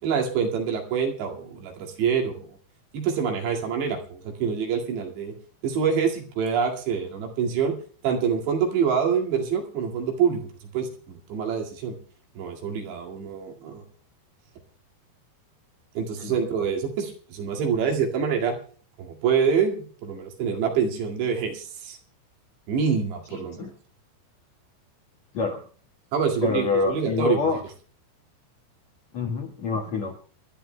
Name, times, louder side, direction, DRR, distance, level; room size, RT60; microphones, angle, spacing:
voice 1, 0.0-2.6 2.9-5.3 5.6-7.7 8.0-10.4 10.7-11.9 12.4-13.8 16.0-18.6 19.0-22.0 22.7-23.7 26.1-27.4, right 6 dB, 80° right, 2 dB, 4.4 m, -26 dB
voice 2, 23.3-23.7 25.3-25.6 26.4-27.6 29.1-30.1, left 4 dB, 55° left, 1 dB, 2.1 m, -26 dB
29.0 x 12.0 x 2.2 m, 0.42 s
omnidirectional pair, 5.0 m